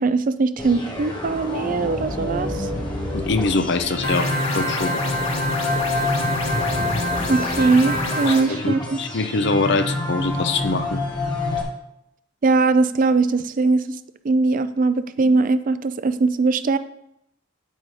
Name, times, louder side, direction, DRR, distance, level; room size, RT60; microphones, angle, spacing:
voice 1, 0.0-2.7 7.3-9.0 12.4-13.8 14.2-16.8, right 3 dB, 45° right, 12 dB, 0.4 m, -20 dB
sound 1, 0.6-11.6, left 2 dB, 25° left, 1.5 m, -27 dB
voice 2, 3.1-4.9 8.3-11.0, left 3 dB, 60° left, 9 dB, 0.7 m, -23 dB
sound 2, 4.0-8.4, equal, 85° left, 1.8 m, -26 dB
9.1 x 9.1 x 3.2 m, 0.80 s
head